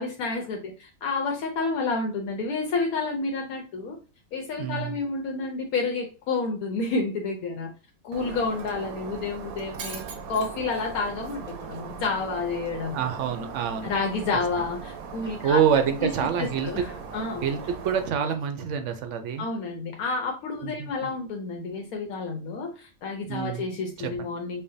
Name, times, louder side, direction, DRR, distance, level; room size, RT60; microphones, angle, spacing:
voice 1, 0.0-4.0 4.3-7.7 8.0-10.0 10.3-13.0 13.8-15.6 16.0-17.5 19.4-24.6, left 4 dB, 80° left, 2 dB, 1.1 m, -30 dB
voice 2, 4.6-4.9 12.9-13.9 15.4-16.8 17.4-19.5 20.6-21.1 23.3-23.6 24.0-24.1, right 8 dB, 65° right, 7 dB, 0.8 m, -26 dB
Shatter, 8.1-18.1, right 5 dB, 85° right, 1.1 m, -39 dB
5.4 x 2.1 x 2.6 m, 0.35 s
omnidirectional pair, 1.5 m